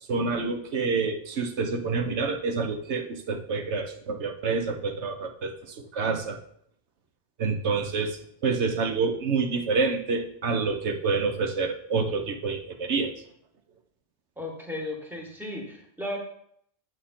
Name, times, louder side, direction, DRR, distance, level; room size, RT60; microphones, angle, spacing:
voice 1, 0.1-6.4 7.4-8.2 8.4-13.1, right 4 dB, 85° right, 4 dB, 1.2 m, -27 dB
voice 2, 14.4-16.2, left 1 dB, ahead, 0 dB, 1.7 m, -35 dB
8.8 x 6.5 x 3.8 m, 0.65 s
omnidirectional pair, 1.1 m